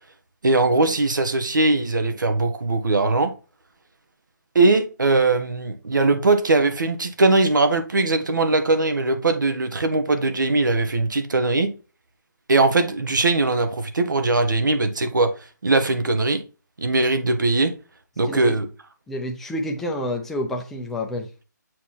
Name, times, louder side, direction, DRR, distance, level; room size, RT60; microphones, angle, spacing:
voice 1, 0.4-3.3 4.5-11.7 12.5-15.3 15.6-16.4 16.8-17.7 18.2-18.7, right 2 dB, 75° right, 1.5 m, -20 dB
voice 2, 19.1-21.3, left 1 dB, 5° left, 0.5 m, -28 dB
7.4 x 4.0 x 4.3 m
hypercardioid pair, 165°, 10 cm